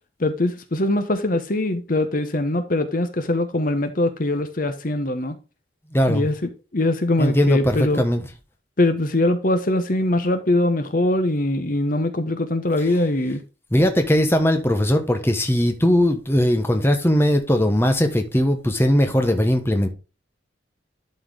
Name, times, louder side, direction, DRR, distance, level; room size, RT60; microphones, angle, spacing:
voice 1, 0.2-5.4 6.1-8.0 8.8-13.4, left 1 dB, 45° left, 1.0 m, -22 dB
voice 2, 5.9-6.2 7.2-8.2 13.7-19.9, equal, 10° left, 1.1 m, -19 dB
11.5 x 4.4 x 3.6 m
head